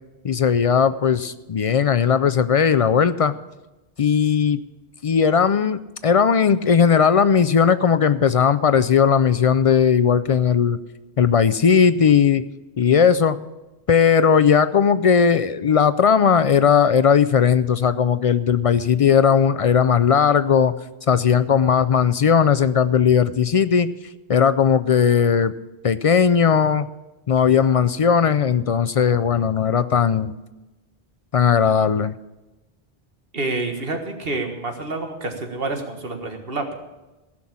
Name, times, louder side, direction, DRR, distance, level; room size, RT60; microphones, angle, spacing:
voice 1, 0.2-3.4 4.0-4.6 5.0-10.8 11.2-12.4 12.8-13.4 13.9-20.7 21.1-23.9 24.3-25.5 25.8-26.9 27.3-30.3 31.3-32.1, left 7 dB, 50° left, 13 dB, 0.4 m, -17 dB
voice 2, 33.3-36.7, right 2 dB, 65° right, 4 dB, 1.8 m, -28 dB
15.5 x 6.0 x 8.6 m, 1.1 s
omnidirectional pair, 1.0 m